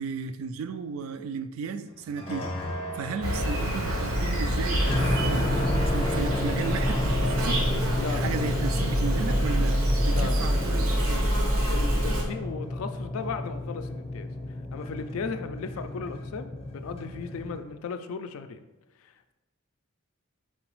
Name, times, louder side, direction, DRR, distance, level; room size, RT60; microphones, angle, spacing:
voice 1, 0.0-2.5 2.9-11.3, right 5 dB, 65° right, 10 dB, 0.3 m, -35 dB
sound 1, 2.0-17.6, left 1 dB, 25° left, 0.6 m, -32 dB
Insect, 3.2-12.2, equal, 85° right, 0.9 m, -26 dB
voice 2, 8.0-8.5 10.1-10.4 11.7-14.3 14.7-18.6 19.0-19.3, left 5 dB, 75° left, 9 dB, 0.3 m, -36 dB
4.3 x 3.9 x 3.0 m, 1.1 s
head